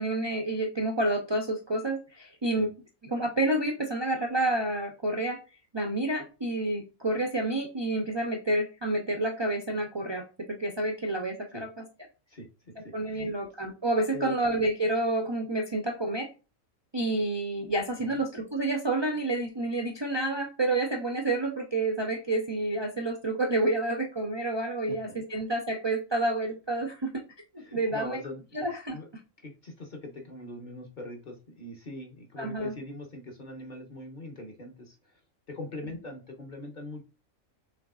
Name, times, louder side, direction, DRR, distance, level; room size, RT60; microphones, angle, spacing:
voice 1, 0.0-2.7 3.0-5.4 5.7-11.7 12.9-16.3 16.9-27.1 27.5-28.2 28.5-29.0 32.4-32.7, right 2 dB, 30° right, 1 dB, 0.6 m, -29 dB
voice 2, 12.3-13.3 14.1-14.3 18.0-18.2 24.9-25.0 25.3-25.4 27.6-28.4 28.9-29.1 29.4-35.2 35.5-37.0, left 1 dB, 40° left, 2 dB, 1.2 m, -42 dB
5.7 x 3.5 x 2.4 m, 0.32 s
omnidirectional pair, 1.4 m